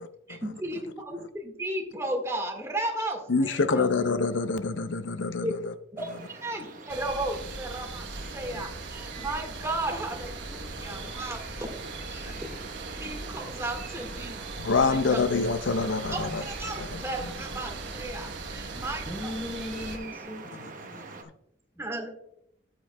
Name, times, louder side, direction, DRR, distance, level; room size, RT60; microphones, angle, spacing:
voice 1, 0.3-3.6 5.4-5.5 5.9-11.7 12.0-12.4 13.0-14.4 14.7-15.2 16.1-19.3 21.8-22.1, right 1 dB, 15° right, 1.6 m, -34 dB
voice 2, 3.3-5.7 8.5-8.6 10.9-11.1 12.3-12.4 14.6-16.4 16.8-17.0 20.9-21.0, left 4 dB, 70° left, 0.6 m, -26 dB
sound 1, 6.0-21.2, right 4 dB, 45° right, 0.9 m, -44 dB
sound 2, 6.9-20.0, right 3 dB, 70° right, 1.0 m, -40 dB
voice 3, 18.6-21.2 21.7-21.8, left 1 dB, 10° left, 1.1 m, -39 dB
13.5 x 7.5 x 2.2 m
head